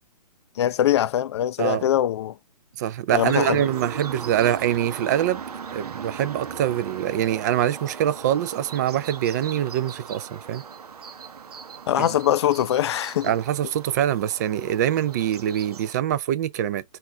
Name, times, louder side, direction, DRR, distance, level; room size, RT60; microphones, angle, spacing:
voice 1, 0.6-2.3 3.1-3.6 11.9-13.3, left 11 dB, 45° left, 0.4 m, -22 dB
voice 2, 2.8-5.4 5.7-10.6 12.0-12.1 13.2-16.8, right 11 dB, 30° right, 0.4 m, -24 dB
sound 1, 3.1-16.0, right 6 dB, 75° right, 0.8 m, -38 dB
4.1 x 2.5 x 4.3 m
hypercardioid pair, 140°, 20 cm